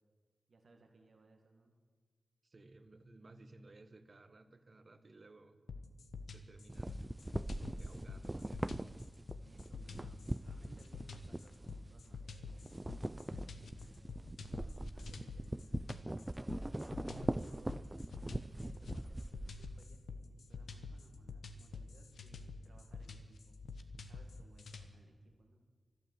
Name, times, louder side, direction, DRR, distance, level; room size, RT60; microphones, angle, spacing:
voice 1, 0.5-1.7 9.4-12.7 13.3-14.2 14.4-15.8 17.0-17.8 18.2-23.6 24.0-25.6, right 2 dB, 65° right, 2 dB, 2.0 m, -64 dB
voice 2, 2.4-5.6 6.3-7.0 7.6-8.9, right 2 dB, 50° right, 9 dB, 1.4 m, -59 dB
sound 1, 5.7-24.9, left 4 dB, 80° left, 1.1 m, -48 dB
sound 2, 6.7-12.2 12.4-19.9, right 1 dB, 20° right, 0.4 m, -42 dB
12.5 x 12.0 x 7.9 m, 1.5 s
cardioid pair, 40°, 0 cm